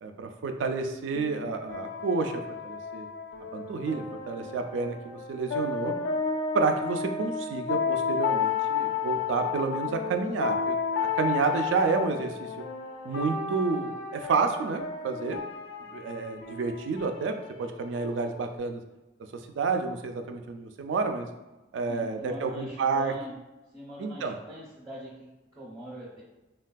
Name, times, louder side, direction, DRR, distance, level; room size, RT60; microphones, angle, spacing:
voice 1, 0.0-3.1 3.5-5.9 6.5-12.5 13.0-15.4 15.9-18.8 19.6-21.3 21.7-23.1 24.0-24.4, right 4 dB, 90° right, 6 dB, 0.3 m, -30 dB
sound 1, 1.1-18.6, left 6 dB, 80° left, 0.3 m, -32 dB
voice 2, 21.9-23.4 23.7-26.2, right 1 dB, 15° right, -7 dB, 0.5 m, -43 dB
3.3 x 2.3 x 2.2 m, 1.1 s
head